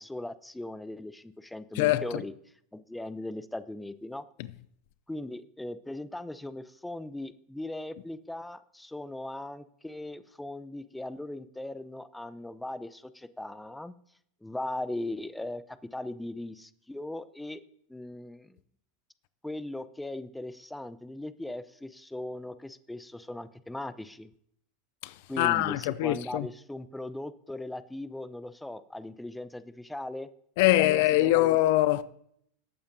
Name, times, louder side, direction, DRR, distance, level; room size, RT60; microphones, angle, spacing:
voice 1, 0.0-2.3 2.7-4.2 5.1-13.9 14.4-17.6 17.9-18.6 19.4-24.3 25.3-30.3 30.8-31.6, left 1 dB, 5° left, 0.6 m, -39 dB
voice 2, 1.8-2.2 25.0-26.5 30.6-32.0, left 16 dB, 60° left, 0.5 m, -24 dB
19.0 x 8.6 x 2.7 m
hypercardioid pair, 95°, 0 cm